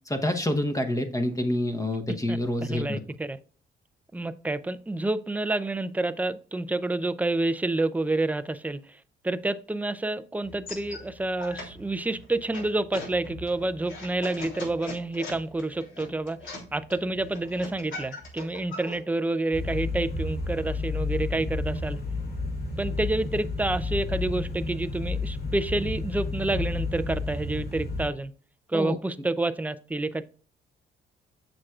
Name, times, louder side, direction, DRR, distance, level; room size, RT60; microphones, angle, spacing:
voice 1, 0.1-3.0 28.7-29.0, left 1 dB, 15° left, 1.0 m, -27 dB
voice 2, 2.7-3.4 4.1-8.8 9.2-22.0 22.8-28.3 28.7-30.2, right 2 dB, 10° right, 0.5 m, -29 dB
sound 1, 10.4-19.0, left 2 dB, 75° left, 3.3 m, -41 dB
sound 2, 19.5-28.1, left 3 dB, 50° left, 2.1 m, -31 dB
7.3 x 6.2 x 2.4 m
cardioid pair, 90°, 20 cm